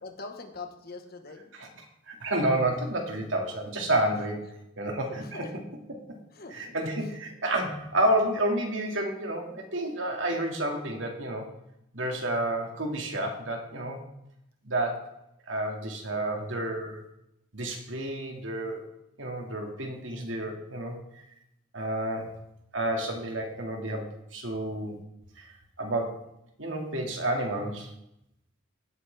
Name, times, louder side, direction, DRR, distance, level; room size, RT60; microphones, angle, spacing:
voice 1, 0.0-1.5 5.1-5.5 6.3-6.5, left 3 dB, 55° left, 5 dB, 1.3 m, -42 dB
voice 2, 1.5-4.5 4.8-5.6 6.5-11.5 11.9-14.0 14.6-15.1 15.5-17.0 17.5-18.9 19.2-21.0 21.7-22.3 22.7-25.0 25.4-25.5 25.8-26.2 26.6-27.9, right 1 dB, 90° right, 2 dB, 2.1 m, -30 dB
15.5 x 7.9 x 3.4 m, 0.82 s
head